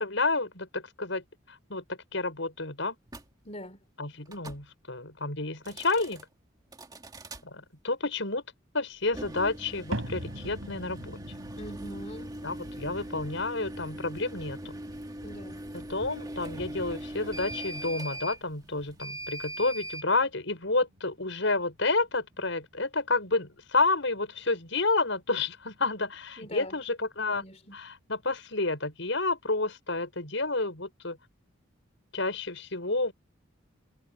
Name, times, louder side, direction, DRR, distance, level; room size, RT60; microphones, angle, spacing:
voice 1, 0.0-3.0 4.0-6.2 7.4-8.4 8.7-11.2 12.4-14.8 15.7-27.4 27.7-31.2 32.1-33.1, left 3 dB, 65° left, 6.2 m, -30 dB
sound 1, 3.1-3.3 4.3-4.6 5.5-6.2 6.7-7.4 9.0-20.1, right 1 dB, 20° right, 2.6 m, -41 dB
voice 2, 3.4-3.8 11.6-12.3 15.2-15.6 26.4-26.8 27.3-27.8, equal, 35° left, 4.1 m, -43 dB
sound 2, 9.9-26.2 26.6-27.1 27.7-27.8 28.6-28.7, right 1 dB, 85° right, 6.5 m, -46 dB
head